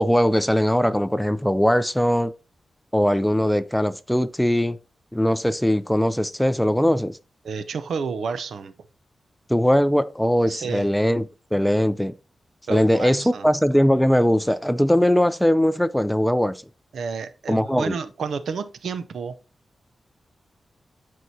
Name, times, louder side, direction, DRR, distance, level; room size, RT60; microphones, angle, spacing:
voice 1, 0.0-2.3 2.9-4.8 5.1-7.2 9.5-12.1 12.7-16.6 17.5-17.9, equal, 5° left, 0.4 m, -20 dB
voice 2, 7.4-8.7 10.5-10.9 12.7-13.5 16.9-19.4, right 5 dB, 90° right, 0.6 m, -30 dB
12.0 x 4.8 x 2.7 m
wide cardioid pair, 110°, 0 cm